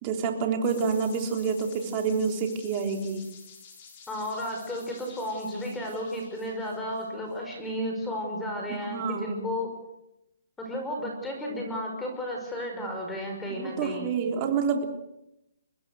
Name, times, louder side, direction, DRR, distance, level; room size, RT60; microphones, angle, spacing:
voice 1, 0.0-3.2 8.7-9.5 13.5-14.9, right 5 dB, 30° right, 3 dB, 3.6 m, -28 dB
sound 1, 0.6-7.3, left 6 dB, 40° left, 7.1 m, -50 dB
voice 2, 4.1-9.7 10.6-14.1, left 1 dB, 10° left, 1 dB, 5.4 m, -33 dB
24.5 x 20.0 x 6.5 m, 0.86 s
hypercardioid pair, 150°, 0 cm